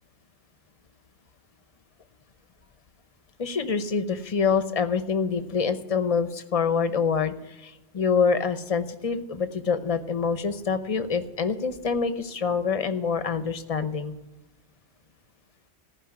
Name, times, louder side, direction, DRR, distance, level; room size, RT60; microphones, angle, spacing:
voice 1, 3.4-14.1, left 5 dB, 35° left, 10 dB, 0.8 m, -26 dB
15.0 x 5.3 x 9.7 m, 0.99 s
omnidirectional pair, 1.1 m